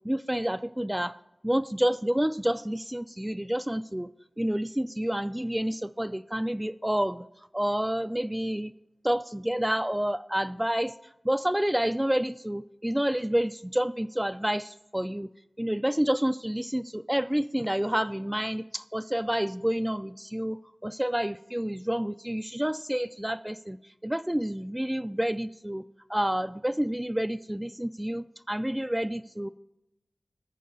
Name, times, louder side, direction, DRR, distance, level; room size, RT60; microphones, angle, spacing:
voice 1, 0.0-1.2 1.4-4.1 4.4-7.3 7.5-8.7 9.0-10.9 11.2-15.3 15.6-25.8 26.1-29.5, equal, 10° right, 10 dB, 0.3 m, -29 dB
14.0 x 4.7 x 6.5 m, 0.87 s
wide cardioid pair, 65°, 0 cm